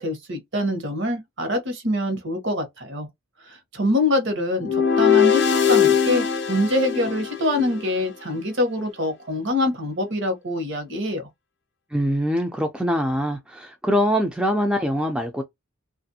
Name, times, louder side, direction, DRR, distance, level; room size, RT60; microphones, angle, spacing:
voice 1, 0.0-3.1 3.4-11.3, left 1 dB, 55° right, 1.0 m, -25 dB
sound 1, 4.6-7.9, left 8 dB, 50° left, 0.5 m, -20 dB
voice 2, 11.9-15.4, equal, 5° right, 0.3 m, -23 dB
2.9 x 2.5 x 2.7 m
head